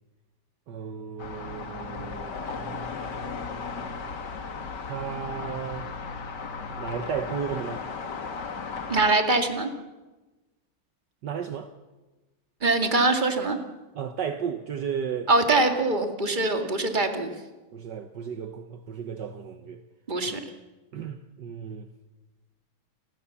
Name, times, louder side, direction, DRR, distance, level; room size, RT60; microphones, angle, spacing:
voice 1, 0.7-3.2 4.8-5.9 6.8-7.8 11.2-11.7 13.9-15.3 17.7-19.8 20.3-20.4 20.9-21.9, right 7 dB, 60° right, 8 dB, 1.6 m, -34 dB
sound 1, 1.2-9.2, left 5 dB, 60° left, 2.2 m, -36 dB
voice 2, 8.9-9.7 12.6-13.6 15.3-17.3 20.1-20.4, right 2 dB, 25° right, 5 dB, 2.2 m, -23 dB
29.5 x 20.0 x 7.2 m, 1.1 s
omnidirectional pair, 2.2 m